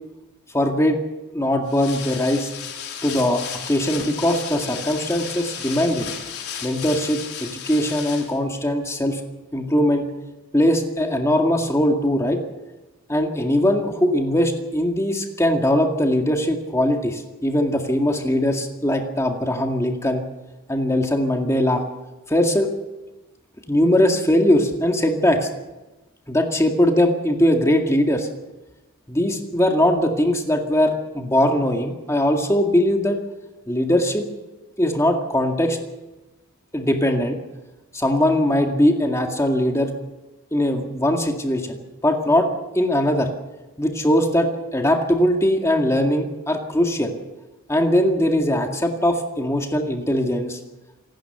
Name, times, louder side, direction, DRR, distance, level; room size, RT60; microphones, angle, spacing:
voice 1, 0.5-1.0 1.3-2.5 3.0-6.1 6.6-9.2 9.5-10.1 10.5-12.4 13.1-20.2 20.7-21.8 22.3-22.7 23.7-25.5 26.3-28.3 29.1-33.2 33.7-34.2 34.8-35.8 36.7-37.4 37.9-39.9 40.5-42.5 42.7-43.3 43.8-47.1 47.7-50.6, left 1 dB, 15° left, 3 dB, 2.1 m, -20 dB
sound 1, 1.7-8.4, left 8 dB, 90° left, 4.1 m, -34 dB
27.0 x 12.5 x 8.1 m, 1.1 s
head